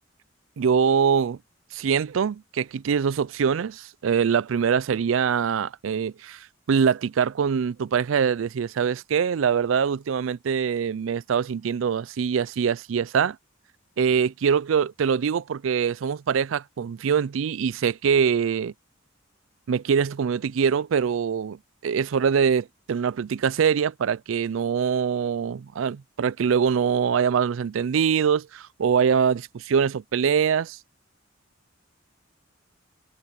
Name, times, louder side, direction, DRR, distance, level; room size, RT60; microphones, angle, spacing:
voice 1, 0.6-1.4 1.7-13.4 14.0-18.7 19.7-21.6 21.8-30.8, right 7 dB, 80° right, 0.4 m, -23 dB
head